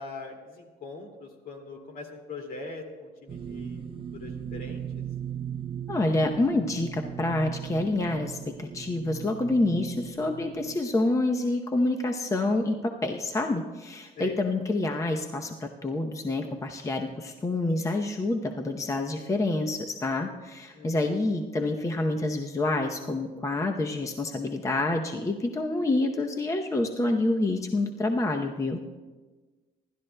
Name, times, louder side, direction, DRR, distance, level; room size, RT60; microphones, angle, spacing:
voice 1, 0.0-3.8 4.1-4.8 14.2-14.4 20.7-21.1, left 3 dB, 60° left, 3 dB, 2.3 m, -41 dB
sound 1, 3.3-10.8, right 8 dB, 30° right, 0.6 m, -38 dB
voice 2, 5.9-28.8, left 2 dB, 20° left, 4 dB, 0.7 m, -27 dB
26.5 x 12.0 x 2.2 m, 1.3 s
cardioid pair, 110°, 17 cm